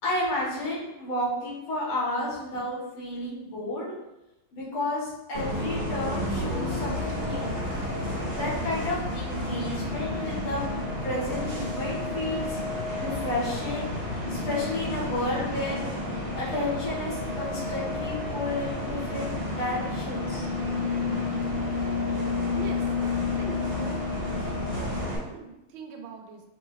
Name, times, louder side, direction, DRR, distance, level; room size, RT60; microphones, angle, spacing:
voice 1, 0.0-3.9 4.5-7.5 8.3-10.6 11.0-12.6 13.0-13.9 14.3-15.8 16.3-20.4, left 1 dB, 90° left, -7 dB, 2.6 m, -31 dB
Bus, 5.3-25.2, left 2 dB, 40° right, 1.8 m, -30 dB
voice 2, 22.3-22.8 23.4-24.0 24.4-26.4, right 6 dB, 80° right, 3 dB, 1.4 m, -42 dB
5.3 x 3.0 x 2.7 m, 0.91 s
omnidirectional pair, 2.2 m